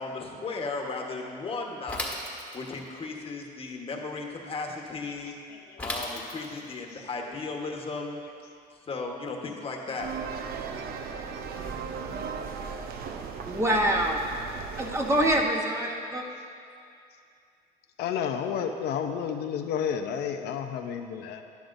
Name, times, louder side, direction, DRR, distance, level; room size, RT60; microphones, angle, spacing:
voice 1, 0.0-2.1 2.5-5.3 5.8-8.2 8.9-10.1, left 3 dB, 35° left, 1 dB, 1.2 m, -35 dB
Bicycle / Mechanisms, 1.9-2.9 5.8-6.7, left 1 dB, 5° left, 1.4 m, -35 dB
voice 2, 5.5-5.9 6.3-6.5 6.9-7.4 18.0-21.4, left 8 dB, 80° left, 5 dB, 0.6 m, -32 dB
sound 1, 10.0-15.4, right 6 dB, 65° right, 0.7 m, -37 dB
voice 3, 13.5-14.2 14.8-16.2, right 1 dB, 15° right, 0 dB, 1.0 m, -25 dB
11.5 x 11.0 x 2.6 m, 2.4 s
cardioid pair, 110°, 17 cm